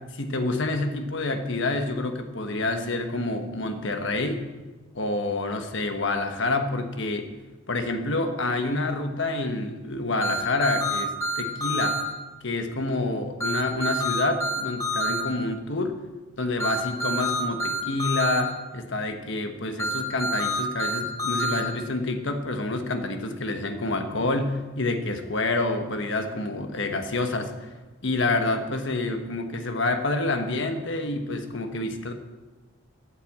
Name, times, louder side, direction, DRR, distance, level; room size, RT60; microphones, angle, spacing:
voice 1, 0.1-4.5 4.9-7.3 7.7-12.0 12.4-16.0 16.4-27.7 28.0-32.1, left 2 dB, 65° left, 6 dB, 1.2 m, -28 dB
sound 1, 10.2-12.0 13.4-15.2 16.6-18.4 19.8-21.6, right 1 dB, 15° left, 3.4 m, -27 dB
9.2 x 8.4 x 7.5 m, 1.2 s
head